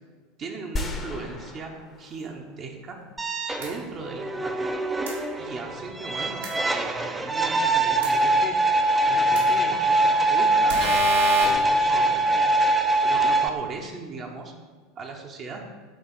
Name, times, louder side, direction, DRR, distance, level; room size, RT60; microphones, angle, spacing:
voice 1, 0.4-1.7 2.0-3.0 3.5-4.7 5.4-8.6 9.0-10.9 11.4-12.7 13.0-14.5 15.0-15.6, right 3 dB, 35° right, 0 dB, 1.0 m, -37 dB
sound 1, 0.8-3.0, left 2 dB, 25° left, 1.0 m, -35 dB
sound 2, 3.2-13.5, right 2 dB, 15° right, 0.7 m, -23 dB
sound 3, 3.6-3.7 5.1-5.2 6.4-6.5 8.0-8.1 9.4-9.5 10.7-11.4, right 4 dB, 70° right, 1.9 m, -27 dB
8.9 x 4.0 x 5.5 m, 1.5 s
figure-of-eight pair, 75°, 0 cm